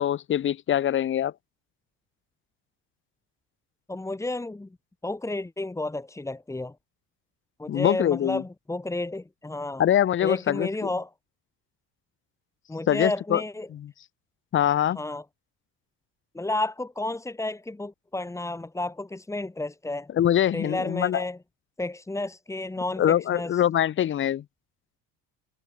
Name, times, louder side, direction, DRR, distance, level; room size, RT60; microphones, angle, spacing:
voice 1, 0.0-1.3 7.7-8.4 9.8-10.7 12.9-13.4 13.7-13.9 14.5-15.0 20.1-21.2 23.0-24.4, left 10 dB, 30° left, 1.2 m, -23 dB
voice 2, 3.9-4.7 5.0-6.8 7.6-9.8 10.2-11.1 12.7-13.7 15.0-15.2 16.3-20.1 20.5-21.4 21.8-23.6, left 2 dB, 5° left, 5.5 m, -31 dB
cardioid pair, 165°, 40 cm